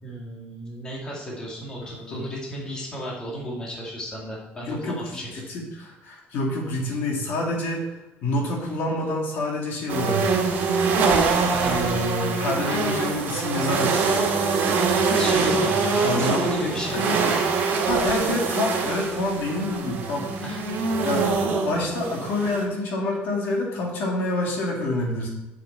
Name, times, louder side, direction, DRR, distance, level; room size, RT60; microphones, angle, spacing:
voice 1, 0.0-5.3 11.5-11.7 12.6-12.8 15.2-17.2 20.4-20.6, equal, 20° left, -4 dB, 2.1 m, -34 dB
voice 2, 1.8-2.2 4.6-7.9 8.2-10.3 11.6-14.0 16.0-17.1 17.9-20.2 21.0-21.3 21.6-25.3, left 2 dB, 60° left, -1 dB, 2.2 m, -27 dB
sound 1, 9.9-22.6, right 4 dB, 55° right, 1.8 m, -24 dB
7.5 x 6.5 x 4.4 m, 1.0 s
cardioid pair, 165°, 4 cm